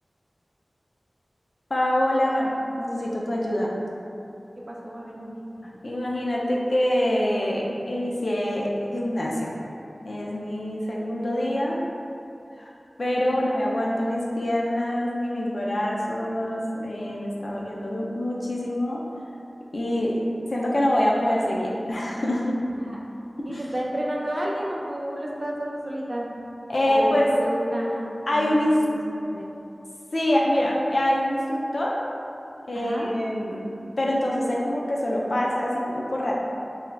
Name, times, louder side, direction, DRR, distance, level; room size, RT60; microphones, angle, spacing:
voice 1, 1.7-3.7 5.8-9.5 10.0-11.8 12.6-12.7 13.0-19.0 19.7-20.2 20.5-22.6 23.5-23.7 26.7-27.3 28.3-28.8 30.1-32.0 32.7-33.6 34.0-36.3, left 1 dB, 70° left, -3 dB, 0.5 m, -25 dB
voice 2, 4.7-5.4 22.8-23.0 23.4-26.3 26.8-29.5 32.7-33.1, equal, 50° right, -3 dB, 0.5 m, -31 dB
3.8 x 2.7 x 2.3 m, 2.7 s
wide cardioid pair, 50°, 0 cm